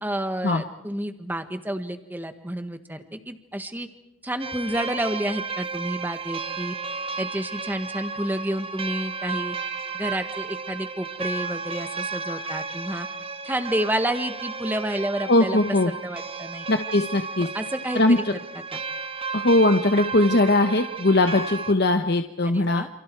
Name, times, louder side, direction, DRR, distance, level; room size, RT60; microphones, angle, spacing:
voice 1, 0.0-3.9 4.2-6.7 7.2-9.6 9.9-13.1 13.4-16.7 17.5-18.2 18.7-18.8 22.4-22.9, right 1 dB, 10° right, 8 dB, 1.5 m, -30 dB
sound 1, 4.4-21.7, right 4 dB, 25° right, 1.0 m, -33 dB
voice 2, 15.3-15.9 16.7-17.5 17.9-18.2 19.3-22.8, left 2 dB, 50° left, 7 dB, 1.0 m, -20 dB
28.5 x 28.0 x 4.7 m, 0.89 s
head